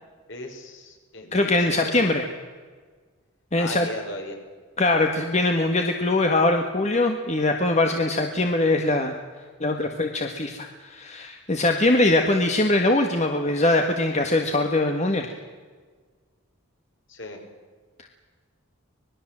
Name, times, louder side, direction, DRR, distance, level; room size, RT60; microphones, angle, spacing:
voice 1, 0.3-1.5 1.8-2.1 3.6-4.4 17.1-17.4, left 1 dB, 60° left, 3 dB, 5.3 m, -36 dB
voice 2, 1.3-2.3 3.5-3.9 4.8-9.1 9.6-15.3, left 2 dB, 30° left, 4 dB, 1.6 m, -22 dB
25.5 x 20.5 x 7.6 m, 1.5 s
head